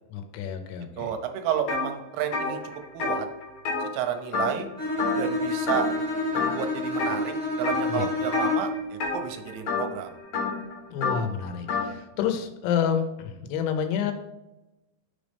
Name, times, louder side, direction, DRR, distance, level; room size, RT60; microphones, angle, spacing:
voice 1, 0.1-1.1 7.9-8.1 10.9-14.1, left 8 dB, 90° left, 7 dB, 3.2 m, -29 dB
voice 2, 1.0-2.6 2.9-3.3 3.8-4.7 5.2-5.9 6.3-10.1, right 9 dB, 80° right, 6 dB, 3.0 m, -31 dB
sound 1, 1.7-1.9 2.2-4.7 5.0-5.4 5.7-6.0 6.3-7.2 7.6-8.0 8.3-11.9, left 4 dB, 70° left, 2.2 m, -29 dB
Bowed string instrument, 4.8-8.9, left 2 dB, 30° left, 0.8 m, -28 dB
6.9 x 5.1 x 3.4 m, 0.99 s
omnidirectional pair, 5.3 m